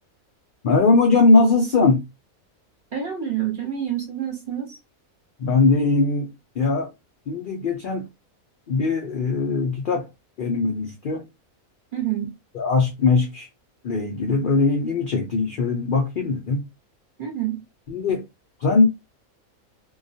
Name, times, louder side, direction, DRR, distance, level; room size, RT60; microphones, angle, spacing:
voice 1, 0.6-2.0 5.4-6.9 7.3-8.1 8.7-10.1 10.4-11.2 12.5-13.5 13.8-16.6 17.9-18.2 18.6-18.9, left 3 dB, 70° left, 0.5 m, -20 dB
voice 2, 2.9-4.8 11.9-12.3 17.2-17.6, right 10 dB, 45° right, 0.8 m, -27 dB
2.2 x 2.2 x 2.6 m
omnidirectional pair, 1.4 m